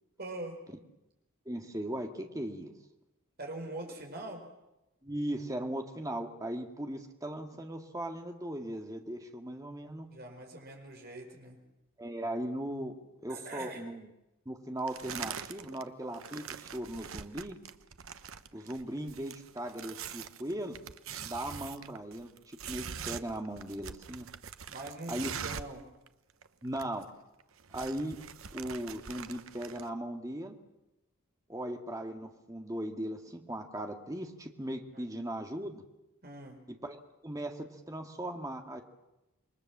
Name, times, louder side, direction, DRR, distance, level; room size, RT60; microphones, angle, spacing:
voice 1, 0.2-0.6 3.4-4.4 10.1-11.6 13.3-13.8 24.7-25.8 34.9-35.1 36.2-36.6, right 2 dB, 45° right, 2 dB, 5.1 m, -43 dB
voice 2, 1.5-2.7 5.0-10.1 12.0-13.0 13.2-14.1 14.5-17.6 18.5-20.8 21.2-24.3 25.1-25.3 26.6-27.1 27.7-28.2 28.5-30.6 31.5-35.8 36.8-37.0 37.2-38.8, right 1 dB, 15° right, 4 dB, 1.9 m, -38 dB
sound 1, 14.9-15.8 16.1-25.8 26.1-26.2 26.4-27.1 27.4-29.9, right 7 dB, 70° right, 0.9 m, -43 dB
27.5 x 22.0 x 7.4 m, 0.95 s
head